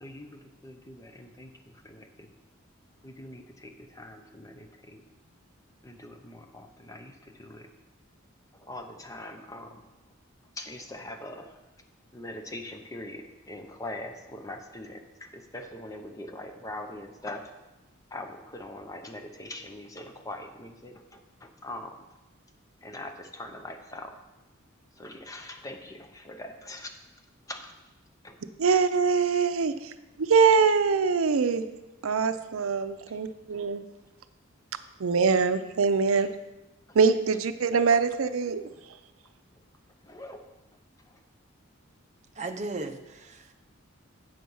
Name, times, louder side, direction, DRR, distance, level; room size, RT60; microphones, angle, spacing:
voice 1, 0.0-2.3 3.0-5.0 5.8-7.7 8.5-9.9 10.6-11.6 12.1-17.5 18.1-22.0 22.8-24.2 25.0-26.9 27.5-27.7 28.2-28.4 33.1-33.2 36.2-36.3 40.0-40.5 41.1-41.2, left 1 dB, 15° left, 5 dB, 0.6 m, -42 dB
voice 2, 28.6-29.7 30.2-31.6 32.0-33.8 35.0-36.3 36.9-38.6, right 5 dB, 90° right, 11 dB, 0.5 m, -23 dB
voice 3, 42.4-43.5, right 2 dB, 35° right, 6 dB, 0.6 m, -36 dB
7.7 x 6.3 x 5.4 m, 1.0 s
head